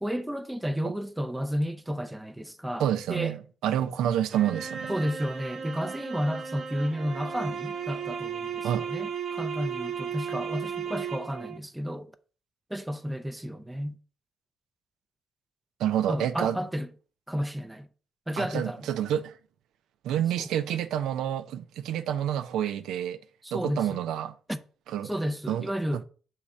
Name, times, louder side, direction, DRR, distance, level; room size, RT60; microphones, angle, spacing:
voice 1, 0.0-3.4 4.9-12.1 12.7-14.0 16.1-16.9 17.3-17.9 18.3-18.8 20.4-20.5 23.4-24.0 24.5-24.6 25.0-26.0, equal, 5° right, 0.5 m, -32 dB
voice 2, 2.8-4.9 8.6-8.8 15.8-16.6 18.4-19.3 20.0-23.2 23.5-24.3 24.9-25.1 25.5-26.0, right 10 dB, 85° right, 0.5 m, -28 dB
sound 1, 4.3-11.6, right 7 dB, 50° right, 0.9 m, -35 dB
6.4 x 3.6 x 4.2 m
cardioid pair, 90°, 0 cm